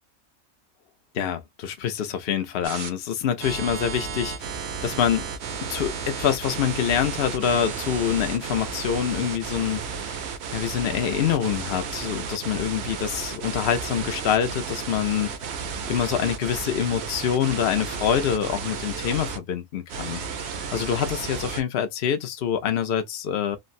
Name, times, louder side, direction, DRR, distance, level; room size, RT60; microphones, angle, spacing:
voice 1, 1.1-5.3 5.6-10.2 10.5-15.3 15.9-20.2 20.5-23.6, left 9 dB, 60° left, 0.7 m, -26 dB
sound 1, 2.6-2.9 3.4-19.4 19.9-21.6, right 5 dB, 60° right, 0.9 m, -33 dB
3.2 x 2.1 x 2.5 m
omnidirectional pair, 1.3 m